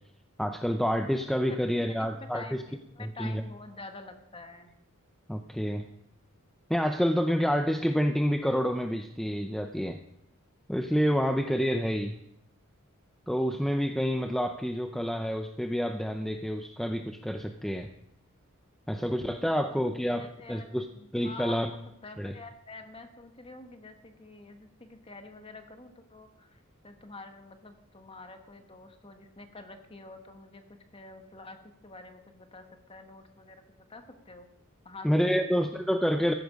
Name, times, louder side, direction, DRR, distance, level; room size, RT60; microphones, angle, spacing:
voice 1, 0.4-2.6 3.0-3.4 5.3-5.8 6.7-10.0 10.7-12.2 13.3-17.9 18.9-20.9 21.1-21.7 22.2-22.3 35.0-36.3, equal, ahead, 6 dB, 0.5 m, -28 dB
voice 2, 1.5-4.7 19.4-30.6 30.9-31.6 31.8-34.5 34.8-35.5 35.8-36.0, left 3 dB, 25° left, 6 dB, 1.4 m, -47 dB
14.5 x 11.0 x 5.2 m, 0.80 s
head